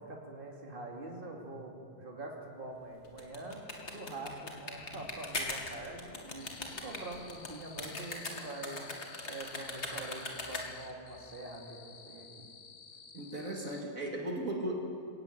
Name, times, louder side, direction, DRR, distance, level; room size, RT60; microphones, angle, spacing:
voice 1, 0.0-12.5, right 2 dB, 35° right, 0 dB, 2.8 m, -45 dB
sound 1, 3.0-10.9, left 2 dB, 45° left, 2.6 m, -40 dB
sound 2, 6.4-13.8, left 6 dB, 85° left, 2.0 m, -54 dB
voice 2, 13.1-14.8, right 1 dB, 55° right, 0 dB, 2.8 m, -36 dB
21.5 x 18.0 x 8.8 m, 2.5 s
omnidirectional pair, 1.7 m